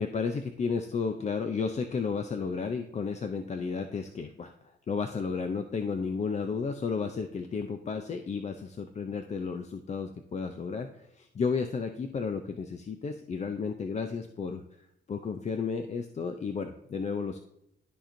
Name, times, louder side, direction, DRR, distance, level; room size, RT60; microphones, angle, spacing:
voice 1, 0.0-4.5 4.9-14.6 15.1-17.4, left 5 dB, 35° left, 7 dB, 0.5 m, -33 dB
13.0 x 4.3 x 2.6 m, 0.79 s
cardioid pair, 110°, 20 cm